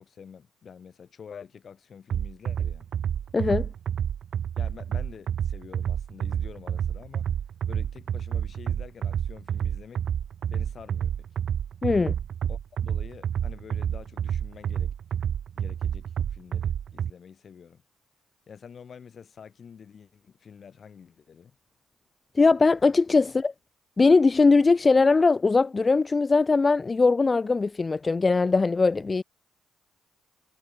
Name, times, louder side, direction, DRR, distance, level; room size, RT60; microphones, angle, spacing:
voice 1, 0.0-2.9 4.6-7.3 7.7-10.0 10.5-11.3 12.5-17.8 18.5-21.6 23.3-23.4, left 7 dB, 50° left, 5.8 m, -47 dB
sound 1, 2.1-17.1, right 9 dB, 60° right, 1.0 m, -29 dB
voice 2, 3.3-3.7 11.8-12.1 22.4-23.5 24.0-29.2, left 4 dB, 30° left, 0.5 m, -20 dB
cardioid pair, 90°, 0 cm